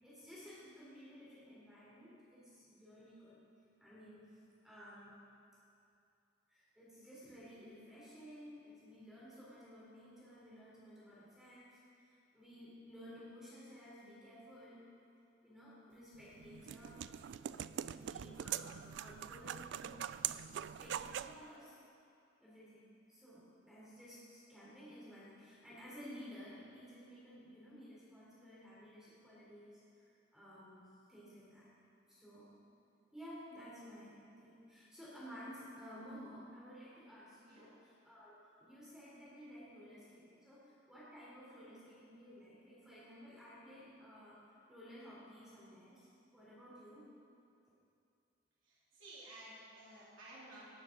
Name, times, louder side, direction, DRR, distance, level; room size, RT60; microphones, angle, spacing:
voice 1, 0.0-3.4 3.8-4.3 4.6-5.1 6.5-14.8 15.4-17.1 17.9-21.8 22.4-31.7 32.1-32.5 33.1-44.4 44.7-47.1, equal, 5° right, -9 dB, 3.5 m, -54 dB
sound 1, 16.1-21.4, right 10 dB, 65° right, 0.3 m, -43 dB
voice 2, 48.7-50.6, right 1 dB, 85° right, -8 dB, 3.4 m, -54 dB
18.0 x 7.3 x 6.1 m, 2.6 s
head